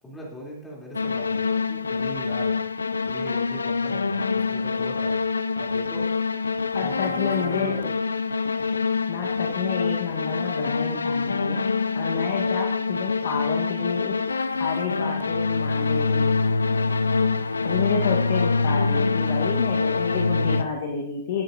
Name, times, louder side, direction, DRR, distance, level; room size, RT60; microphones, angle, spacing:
voice 1, 0.0-2.5 3.0-5.2 5.5-6.1 6.8-7.9, equal, 15° left, -4 dB, 3.2 m, -39 dB
sound 1, 0.9-20.6, left 4 dB, 85° left, 0.4 m, -25 dB
voice 2, 6.7-7.9 9.1-11.6 11.9-14.2 14.6-16.5 17.6-21.4, left 6 dB, 60° left, 1 dB, 1.3 m, -29 dB
12.0 x 7.8 x 2.7 m, 0.76 s
hypercardioid pair, 110°, 0 cm